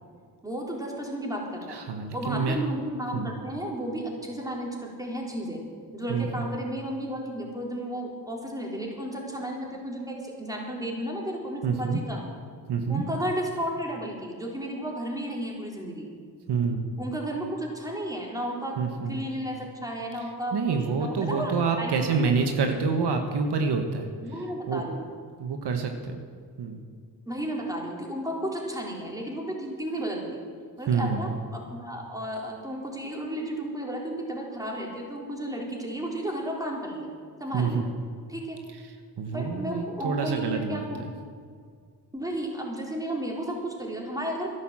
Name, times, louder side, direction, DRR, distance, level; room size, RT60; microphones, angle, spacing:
voice 1, 0.4-1.8 2.1-5.6 5.9-12.2 12.9-16.1 17.0-18.8 19.1-22.3 24.2-25.1 27.3-30.3 30.8-37.1 37.4-37.8 38.3-38.6 39.3-41.0 42.1-44.5, right 1 dB, 10° right, -2 dB, 3.8 m, -33 dB
voice 2, 1.7-2.6 3.1-3.3 6.1-6.5 11.6-12.0 12.7-13.0 16.5-16.9 18.8-19.2 20.5-24.1 24.7-24.8 25.4-26.2 26.6-26.8 30.9-31.3 37.5-37.8 38.9-40.9, right 5 dB, 75° right, 5 dB, 1.3 m, -27 dB
11.5 x 11.0 x 7.5 m, 2.1 s
cardioid pair, 60°, 40 cm